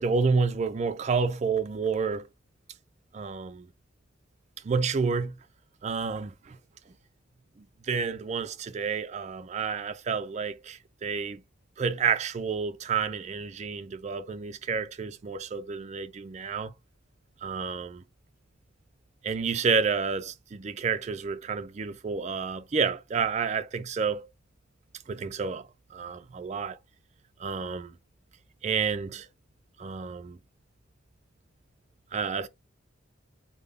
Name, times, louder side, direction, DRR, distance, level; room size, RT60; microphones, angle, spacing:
voice 1, 0.0-2.3 3.1-3.7 4.6-5.3 5.8-6.6 7.6-11.4 11.8-16.7 17.4-18.0 19.2-24.3 25.1-26.8 27.4-27.9 28.6-29.3 29.8-30.4 32.1-32.5, right 5 dB, 35° right, 0.3 m, -30 dB
3.5 x 2.1 x 3.5 m
head